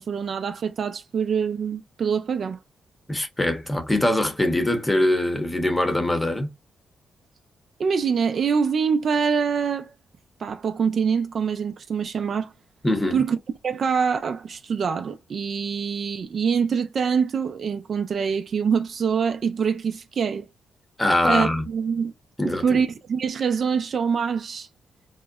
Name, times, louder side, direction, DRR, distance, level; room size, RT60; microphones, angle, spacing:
voice 1, 0.0-2.6 7.8-9.9 10.4-12.5 13.1-13.4 13.6-20.5 21.3-22.1 22.4-24.7, right 6 dB, 55° right, 0.4 m, -24 dB
voice 2, 3.1-6.5 12.8-13.2 21.0-21.6 22.4-22.8, left 1 dB, 10° left, 0.8 m, -23 dB
3.7 x 2.0 x 2.2 m
cardioid pair, 85°, 0 cm